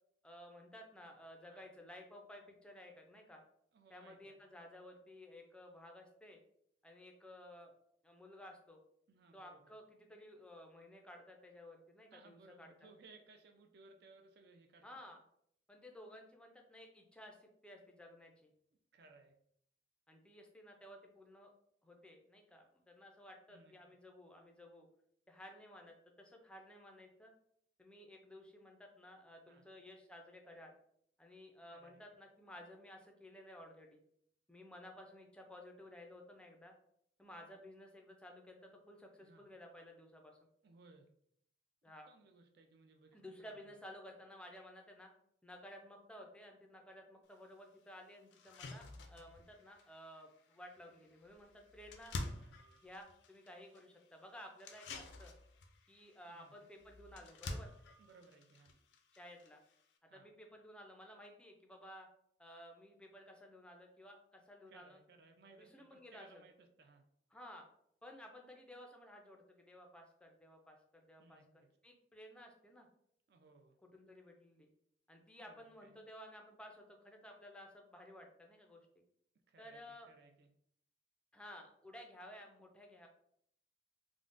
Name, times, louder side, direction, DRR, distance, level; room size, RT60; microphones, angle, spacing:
voice 1, 0.2-3.4 3.9-6.4 6.8-7.7 8.0-8.8 9.3-12.9 14.8-15.2 15.7-18.5 20.1-21.5 21.8-24.9 25.3-27.3 27.8-30.7 31.2-34.0 34.5-36.7 37.2-40.4 41.8-42.1 43.1-45.1 45.4-52.1 52.8-55.3 55.9-57.7 59.1-59.6 60.1-62.1 62.4-65.0 65.6-66.4 67.3-67.7 68.0-71.4 71.8-72.9 73.8-74.7 75.1-78.8 79.6-80.1 81.3-83.1, left 1 dB, 5° left, 2 dB, 0.4 m, -55 dB
voice 2, 3.7-4.4 9.1-9.8 12.1-14.9 18.9-19.3 23.5-23.7 29.5-29.6 31.7-32.0 39.2-39.5 40.6-41.1 41.8-43.8 49.0-49.1 52.3-52.8 56.3-56.5 58.0-58.7 60.1-60.3 64.7-67.1 71.2-71.7 73.3-73.8 75.4-75.9 79.5-80.5, right 3 dB, 60° right, 4 dB, 0.4 m, -63 dB
sound 1, 47.3-47.4 47.8-47.9 48.3-60.0, left 2 dB, 70° left, 0.4 m, -50 dB
3.6 x 2.0 x 2.5 m, 0.69 s
head